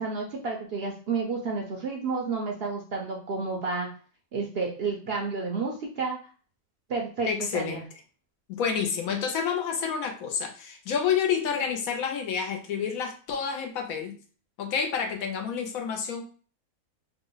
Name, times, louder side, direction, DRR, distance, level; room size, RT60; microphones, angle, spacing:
voice 1, 0.0-3.9 4.3-6.2 6.9-7.3 7.5-7.8, right 4 dB, 60° right, 0 dB, 0.7 m, -30 dB
voice 2, 7.2-7.8 8.5-14.2 14.6-16.2, left 7 dB, 75° left, 4 dB, 1.1 m, -29 dB
2.9 x 2.1 x 3.8 m, 0.40 s
omnidirectional pair, 1.5 m